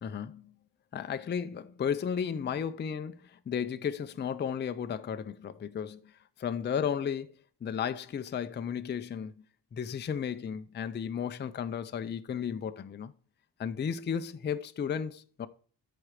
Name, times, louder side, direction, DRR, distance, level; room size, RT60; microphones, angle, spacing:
voice 1, 0.0-0.5 0.9-6.1 6.4-7.3 7.6-9.3 9.7-13.1 13.6-15.5, left 7 dB, 25° left, 0.4 m, -34 dB
13.0 x 4.4 x 4.9 m
wide cardioid pair, 145°, 43 cm